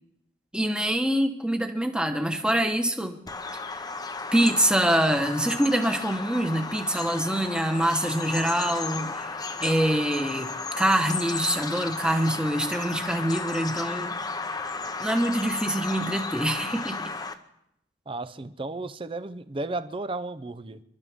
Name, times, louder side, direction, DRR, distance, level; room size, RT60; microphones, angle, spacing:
voice 1, 0.5-3.2 4.3-9.3 9.6-10.5 10.8-14.2 15.0-17.1, right 1 dB, 5° right, 5 dB, 1.2 m, -25 dB
Bird vocalization bird call bird song, 3.3-17.3, left 4 dB, 20° left, 0.8 m, -34 dB
voice 2, 18.1-20.8, right 2 dB, 30° right, 12 dB, 0.6 m, -34 dB
28.5 x 12.5 x 3.6 m, 0.78 s
head